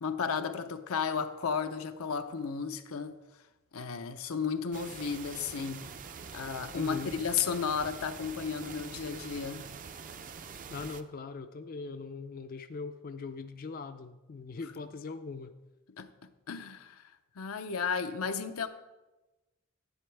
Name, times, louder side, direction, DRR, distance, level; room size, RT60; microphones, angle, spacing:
voice 1, 0.0-3.2 3.7-5.9 6.3-9.7 16.0-16.1 16.5-17.0 17.4-18.7, left 6 dB, 85° left, 0.6 m, -33 dB
sound 1, 4.7-11.0, right 6 dB, 40° right, 0.5 m, -45 dB
voice 2, 6.7-7.1 10.7-15.5, left 4 dB, 45° left, 0.4 m, -40 dB
11.0 x 8.6 x 3.4 m
head